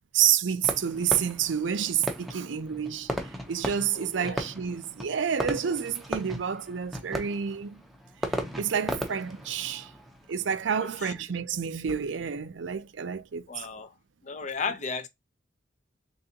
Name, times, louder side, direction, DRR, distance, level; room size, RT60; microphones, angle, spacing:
voice 1, 0.1-3.1 3.5-7.8 8.6-9.9 10.3-13.7, right 8 dB, 65° right, 0.5 m, -29 dB
Fireworks, 0.6-11.2, equal, ahead, 0.6 m, -37 dB
voice 2, 3.9-4.4 10.7-11.1 13.5-13.9 14.2-15.1, left 5 dB, 40° left, 0.5 m, -35 dB
3.8 x 3.4 x 2.8 m
head